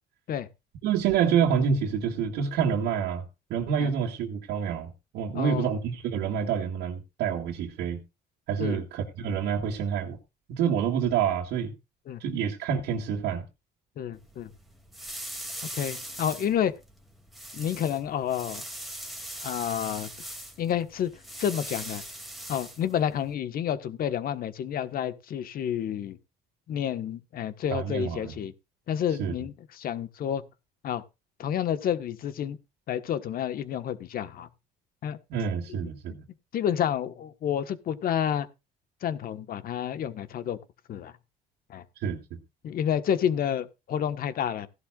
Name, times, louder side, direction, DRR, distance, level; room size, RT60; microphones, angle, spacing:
voice 1, 0.8-8.0 8.5-10.2 10.5-11.7 12.2-13.4 27.7-28.4 29.2-29.3 35.3-36.2 42.0-42.4, right 7 dB, 85° right, 2.2 m, -27 dB
voice 2, 5.3-5.7 8.6-8.8 12.1-12.2 14.0-14.5 15.7-16.7 17.5-18.6 19.4-20.1 20.6-21.1 21.4-22.0 22.5-26.2 26.7-28.5 28.9-30.4 30.8-31.0 31.4-32.6 32.9-34.5 35.0-35.2 35.7-35.9 36.5-38.5 39.0-40.6 40.9-41.1 41.7-41.8 42.6-44.7, left 9 dB, 60° left, 1.4 m, -29 dB
sound 1, 14.1-23.3, right 1 dB, ahead, 2.6 m, -41 dB
16.5 x 11.5 x 2.5 m
cardioid pair, 110°, 17 cm